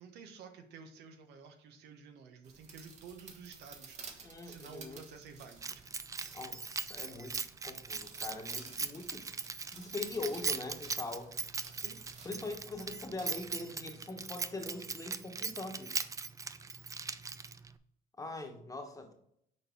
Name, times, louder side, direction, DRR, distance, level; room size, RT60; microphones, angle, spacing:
voice 1, 0.0-6.0 11.8-12.0, right 5 dB, 80° right, 5 dB, 1.2 m, -52 dB
sound 1, 2.4-13.5, right 4 dB, 45° right, 1.4 m, -54 dB
voice 2, 4.2-5.0 6.3-9.3 9.7-11.4 12.2-16.0 18.2-19.2, left 2 dB, 20° left, 4 dB, 1.3 m, -42 dB
Keys jangling, 5.6-17.7, right 4 dB, 20° right, 0.4 m, -40 dB
6.3 x 4.5 x 4.5 m, 0.72 s
cardioid pair, 110°, 17 cm